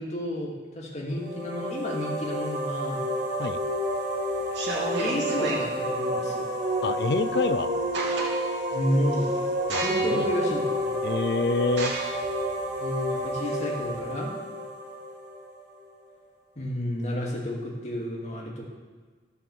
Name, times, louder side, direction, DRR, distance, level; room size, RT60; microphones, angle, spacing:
voice 1, 0.0-3.0 5.0-6.5 8.7-9.3 9.8-10.9 12.8-14.3 16.6-18.6, equal, 40° left, -3 dB, 2.5 m, -31 dB
sound 1, 1.1-15.8, right 1 dB, 45° right, 2.0 m, -30 dB
sound 2, 3.5-3.9 4.4-5.7 7.3-7.4 7.7-8.6 9.1-9.3 9.7-10.3 10.8-10.9 11.7-14.0, right 2 dB, 85° right, 2.3 m, -32 dB
voice 2, 6.8-7.7 9.7-9.8 10.1-10.3 11.0-11.9, left 3 dB, 65° left, 13 dB, 0.5 m, -26 dB
13.0 x 5.8 x 7.2 m, 1.5 s
head